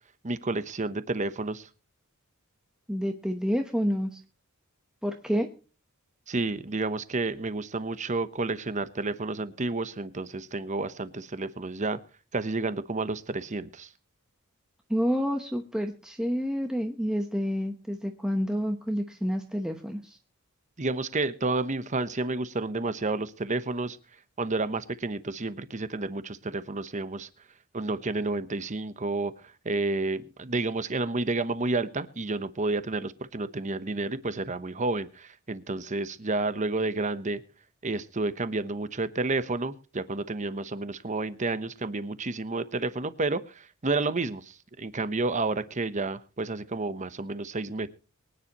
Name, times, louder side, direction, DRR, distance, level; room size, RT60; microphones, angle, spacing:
voice 1, 0.2-1.7 6.3-12.0 12.3-13.9 20.8-24.0 24.4-27.3 27.7-29.3 29.6-37.4 37.8-47.9, right 3 dB, 35° right, 13 dB, 1.0 m, -30 dB
voice 2, 2.9-4.2 5.0-5.5 14.9-20.2, equal, 5° right, 4 dB, 1.0 m, -29 dB
23.5 x 10.0 x 3.0 m, 0.36 s
head